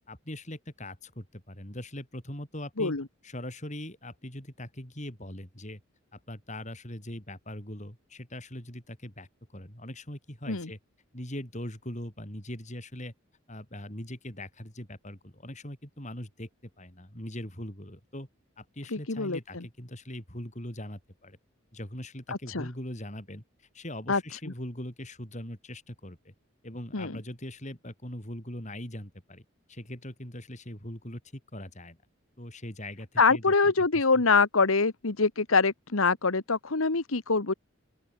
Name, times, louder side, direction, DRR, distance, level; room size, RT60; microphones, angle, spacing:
voice 1, 0.0-2.9 3.2-5.8 6.1-10.8 11.1-13.1 13.5-16.5 16.8-18.3 18.6-21.4 21.7-23.4 23.7-26.3 26.6-32.0 32.4-33.5 33.9-34.2, left 1 dB, 35° left, 6.0 m, -41 dB
voice 2, 18.9-19.6 22.3-22.7 24.1-24.2 26.9-27.1 33.2-37.5, left 4 dB, 80° left, 1.4 m, -25 dB
open air
head